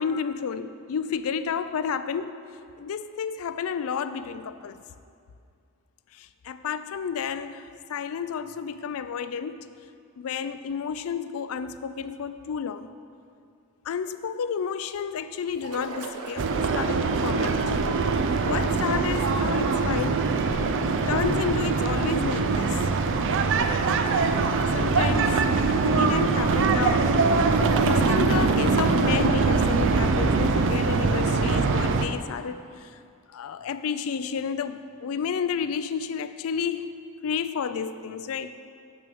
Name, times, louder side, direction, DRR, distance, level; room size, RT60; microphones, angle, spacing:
voice 1, 0.0-2.4 2.8-4.8 6.1-7.6 7.9-9.7 10.2-12.9 13.9-17.7 18.5-20.3 21.1-22.9 24.6-27.1 27.7-33.0 33.3-38.5, left 6 dB, 65° left, 12 dB, 0.4 m, -31 dB
sound 1, 15.5-25.4, right 3 dB, 85° right, 0.8 m, -43 dB
sound 2, 16.4-32.1, right 4 dB, 55° right, 0.5 m, -23 dB
6.2 x 6.2 x 6.9 m, 2.4 s
head